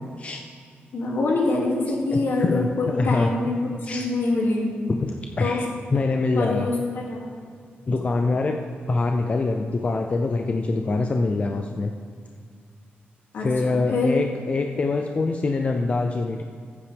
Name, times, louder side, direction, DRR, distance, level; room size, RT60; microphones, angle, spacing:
voice 1, 0.9-3.5 3.9-4.7 5.4-5.6 6.3-7.3 13.3-14.1, left 2 dB, 75° left, -3 dB, 2.5 m, -25 dB
voice 2, 2.1-3.3 3.8-4.1 5.0-6.7 7.9-8.6 8.9-11.9 13.4-16.4, left 3 dB, 35° left, 3 dB, 0.5 m, -24 dB
15.0 x 8.3 x 3.5 m, 2.2 s
wide cardioid pair, 155°, 4 cm